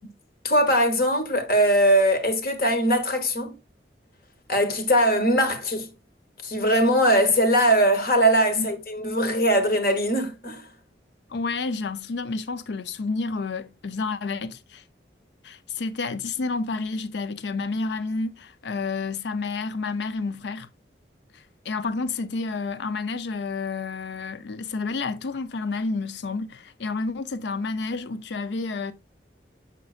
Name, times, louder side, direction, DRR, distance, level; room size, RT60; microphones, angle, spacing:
voice 1, 0.4-3.6 4.5-5.9 6.4-10.7, equal, 55° left, 1.1 m, -21 dB
voice 2, 11.3-14.8 15.4-20.7 21.7-28.9, left 3 dB, 70° left, 0.5 m, -30 dB
7.4 x 5.2 x 2.4 m
head